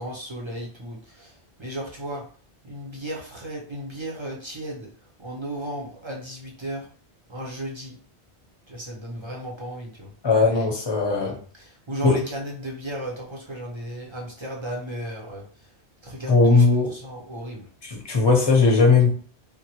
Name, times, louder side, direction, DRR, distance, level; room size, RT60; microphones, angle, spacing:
voice 1, 0.0-1.3 1.6-2.2 2.6-4.9 5.2-6.8 7.3-7.9 8.7-10.1 11.6-15.4 16.0-16.6 16.9-17.6, right 1 dB, 30° right, -1 dB, 0.6 m, -34 dB
voice 2, 10.2-11.4 12.0-12.2 16.3-16.9 17.8-19.1, left 4 dB, 25° left, 0 dB, 0.7 m, -18 dB
3.7 x 2.1 x 2.9 m, 0.44 s
omnidirectional pair, 1.1 m